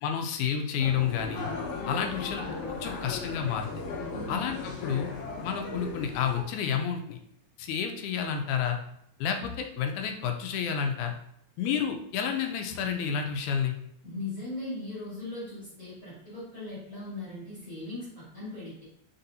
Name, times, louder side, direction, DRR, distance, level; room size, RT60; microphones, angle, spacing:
voice 1, 0.0-1.5 1.9-3.7 4.3-5.1 5.4-7.2 7.6-8.8 9.2-11.1 11.6-13.7, left 7 dB, 85° left, 4 dB, 2.1 m, -30 dB
sound 1, 0.8-6.4, left 4 dB, 70° left, 1.5 m, -37 dB
voice 2, 4.1-4.4 14.0-18.8, left 2 dB, 35° left, -9 dB, 1.7 m, -39 dB
4.2 x 4.0 x 2.7 m, 0.74 s
omnidirectional pair, 3.4 m